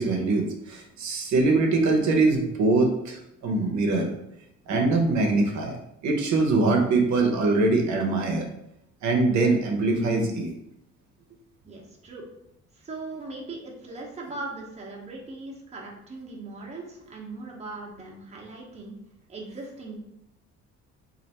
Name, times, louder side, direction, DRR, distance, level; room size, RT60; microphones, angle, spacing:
voice 1, 0.0-4.1 4.7-5.8 6.0-8.5 9.0-10.5, right 3 dB, 70° right, 2 dB, 0.7 m, -23 dB
voice 2, 11.6-12.2 12.8-19.0 19.3-20.0, right 3 dB, 20° right, -2 dB, 0.8 m, -39 dB
3.2 x 2.5 x 4.1 m, 0.81 s
cardioid pair, 140°, 30 cm